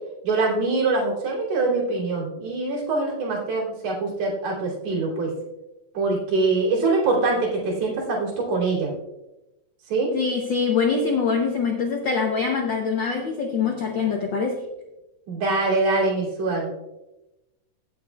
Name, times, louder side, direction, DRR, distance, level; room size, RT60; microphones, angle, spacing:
voice 1, 0.2-5.3 5.9-8.9 9.9-10.1 15.3-16.7, right 3 dB, 70° right, -5 dB, 4.2 m, -24 dB
voice 2, 10.1-14.6, left 5 dB, 75° left, 2 dB, 1.0 m, -24 dB
17.0 x 7.4 x 2.3 m, 0.98 s
omnidirectional pair, 3.3 m